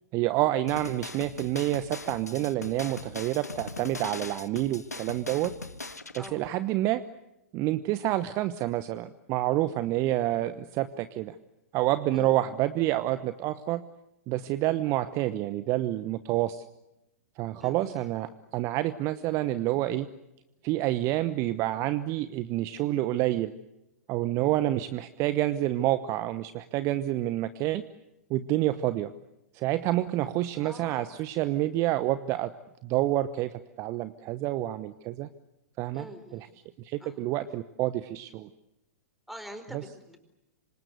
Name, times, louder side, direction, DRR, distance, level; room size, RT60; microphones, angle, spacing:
voice 1, 0.1-5.5 6.1-7.0 7.5-11.4 11.7-13.8 14.3-16.6 17.4-20.1 20.6-23.5 24.1-27.8 28.3-29.1 29.5-32.5 32.8-35.3 35.8-36.1 36.3-36.4 36.8-38.5 39.7-39.8, right 15 dB, 35° right, 13 dB, 1.0 m, -28 dB
sound 1, 0.7-6.3, left 3 dB, 85° left, 1.5 m, -40 dB
voice 2, 17.6-18.0 30.5-31.1 35.9-36.4 37.0-37.2 39.3-40.2, equal, ahead, 7 dB, 4.5 m, -44 dB
26.0 x 26.0 x 8.1 m, 0.92 s
figure-of-eight pair, 105°, 8 cm